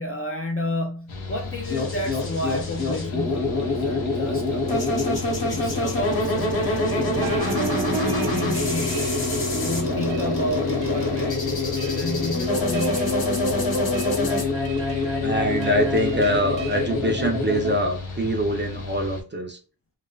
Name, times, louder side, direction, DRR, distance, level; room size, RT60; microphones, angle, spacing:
voice 1, 0.0-9.1 9.5-13.1, left 1 dB, 35° left, 0.4 m, -32 dB
Mechanical fan, 1.1-19.2, left 3 dB, 90° left, 0.7 m, -35 dB
sound 1, 1.6-17.7, left 2 dB, 55° left, 0.9 m, -25 dB
sound 2, 7.2-9.5 10.1-10.3 10.8-11.3 11.8-12.2 12.7-13.3 13.9-14.2 14.6-15.2 15.6-16.9, right 4 dB, 70° right, 0.7 m, -35 dB
voice 2, 15.2-19.6, equal, 25° right, 0.5 m, -24 dB
2.6 x 2.2 x 2.2 m
wide cardioid pair, 80°, 45 cm